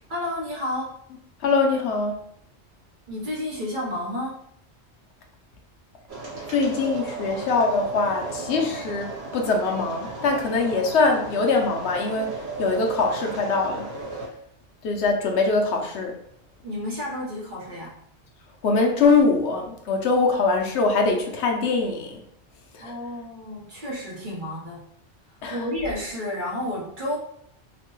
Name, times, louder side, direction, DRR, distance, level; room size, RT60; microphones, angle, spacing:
voice 1, 0.1-1.0 3.1-4.4 16.6-18.0 22.8-24.9 25.5-27.2, left 1 dB, 50° right, -4 dB, 1.0 m, -31 dB
voice 2, 1.4-2.2 6.5-13.9 14.8-16.1 18.6-22.2 22.7-22.9 25.4-25.6, left 4 dB, 80° left, 2 dB, 0.9 m, -23 dB
sound 1, 6.1-14.3, right 3 dB, 70° right, 1.3 m, -35 dB
2.9 x 2.1 x 3.0 m, 0.69 s
omnidirectional pair, 1.1 m